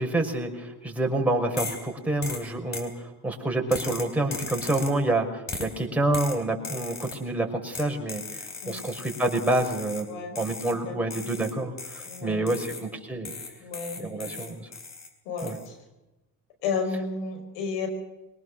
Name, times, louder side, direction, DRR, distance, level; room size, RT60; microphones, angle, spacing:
voice 1, 0.0-2.9 3.2-8.2 8.7-10.1 10.4-13.4 14.0-14.7 15.4-15.6, right 2 dB, 5° right, 0 dB, 5.9 m, -27 dB
sound 1, 1.6-1.9 2.2-2.9 3.7-5.0 5.5-5.8 6.1-7.3 7.7-10.1 10.4-10.8 11.1-12.9 13.2-15.1 15.4-15.7, left 4 dB, 40° left, 4.3 m, -38 dB
voice 2, 8.6-8.9 10.0-10.4 10.7-11.0 12.0-12.5 13.6-14.6 15.3-15.8 16.6-17.9, left 5 dB, 90° left, 5 dB, 5.4 m, -33 dB
23.5 x 19.0 x 6.5 m, 0.98 s
supercardioid pair, 85°, 43 cm